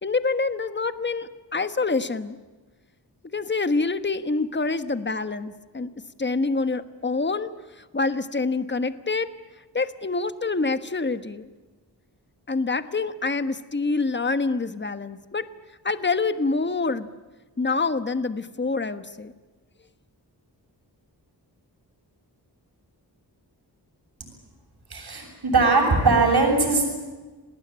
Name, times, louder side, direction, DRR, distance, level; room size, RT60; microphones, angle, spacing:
voice 1, 0.0-2.4 3.3-5.9 6.2-9.3 9.7-11.5 12.5-15.5 15.8-17.1 17.6-19.3, left 3 dB, 25° left, 11 dB, 1.3 m, -26 dB
voice 2, 24.9-26.9, right 3 dB, 65° right, 2 dB, 7.7 m, -20 dB
29.0 x 19.5 x 8.9 m, 1.3 s
wide cardioid pair, 115°, 41 cm